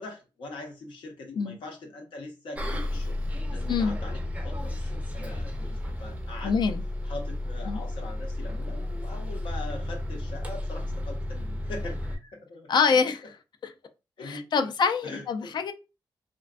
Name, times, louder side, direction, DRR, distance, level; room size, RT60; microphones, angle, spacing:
voice 1, 0.0-3.2 3.5-6.6 7.0-12.7 14.2-14.7 15.0-15.5, left 2 dB, 85° left, 0.7 m, -42 dB
Bus, 2.6-12.2, left 1 dB, 15° right, 0.4 m, -32 dB
voice 2, 6.4-6.8 7.7-7.8 12.7-13.2 14.2-15.7, left 5 dB, 60° left, 0.3 m, -25 dB
2.5 x 2.2 x 2.3 m
cardioid pair, 80°, 8 cm